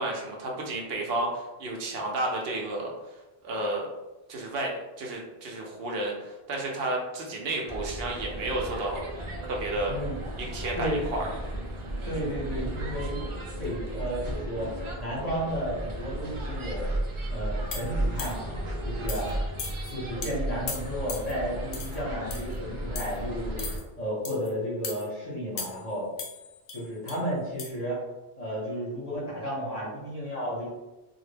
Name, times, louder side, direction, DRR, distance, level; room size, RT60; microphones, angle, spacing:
voice 1, 0.0-2.9 3.4-3.9 4.3-4.7 5.0-9.0 9.4-10.0 10.4-11.3, right 2 dB, 75° right, -1 dB, 0.8 m, -31 dB
sound 1, 7.7-23.8, right 1 dB, 50° right, 0.3 m, -34 dB
voice 2, 12.1-13.2 13.6-16.9 17.3-18.4 18.8-19.3 19.9-23.6 24.0-26.1 26.7-28.0 28.4-30.7, equal, 45° left, -6 dB, 0.9 m, -33 dB
sound 2, 17.7-18.5 19.1-19.3 19.6-19.9 20.2-20.3 20.7-21.3 21.7-22.0 22.3-22.6 23.0-23.2 23.6-23.8 24.2-24.5 24.8-25.0 25.6-25.9 26.2-27.2 27.6-27.7, left 5 dB, 70° left, 0.7 m, -38 dB
2.2 x 2.0 x 3.2 m, 1.1 s
omnidirectional pair, 1.0 m